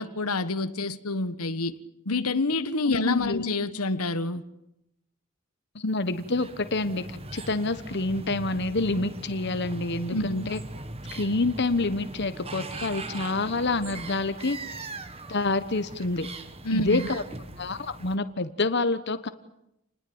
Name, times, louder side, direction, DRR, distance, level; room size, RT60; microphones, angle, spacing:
voice 1, 0.0-1.7 2.0-4.4 10.1-10.5 16.6-17.1, left 2 dB, 85° left, 1.4 m, -27 dB
voice 2, 2.9-3.5 5.7-10.2 10.5-10.6 11.1-14.6 15.3-16.3 16.7-17.2 17.6-19.3, left 2 dB, 50° left, 1.2 m, -27 dB
sound 1, 6.0-18.2, right 2 dB, 25° right, 1.7 m, -40 dB
29.0 x 20.5 x 8.8 m
head